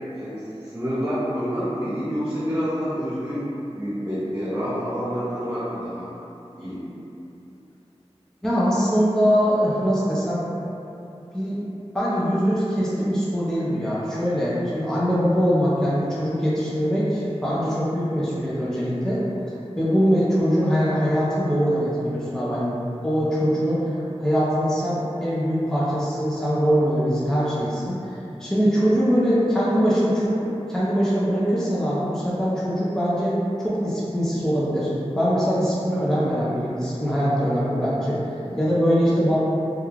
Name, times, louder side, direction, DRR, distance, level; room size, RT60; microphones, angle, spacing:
voice 1, 0.1-3.4 3.7-6.1 6.6-6.8, equal, 20° right, -14 dB, 1.0 m, -28 dB
voice 2, 8.4-10.4 11.3-11.6 11.9-19.2 19.8-22.8 23.0-23.9 24.2-28.0 28.4-33.3 33.6-39.4, equal, 5° left, -9 dB, 0.5 m, -22 dB
2.3 x 2.2 x 3.1 m, 2.9 s
wide cardioid pair, 45°, 11 cm